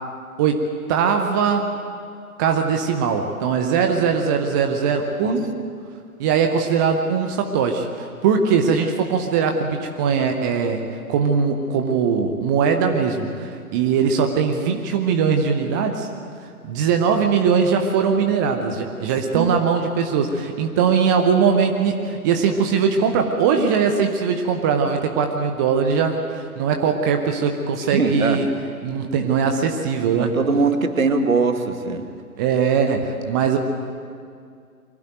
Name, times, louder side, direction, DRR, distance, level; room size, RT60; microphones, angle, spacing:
voice 1, 0.4-1.7 2.4-5.5 6.2-10.8 11.1-16.1 16.6-28.5 28.8-30.3 32.4-33.6, right 6 dB, 15° right, 4 dB, 0.7 m, -20 dB
voice 2, 27.9-28.4 30.2-32.1, right 4 dB, 65° right, 7 dB, 2.2 m, -21 dB
23.5 x 17.0 x 9.2 m, 2.2 s
figure-of-eight pair, 130°, 45 cm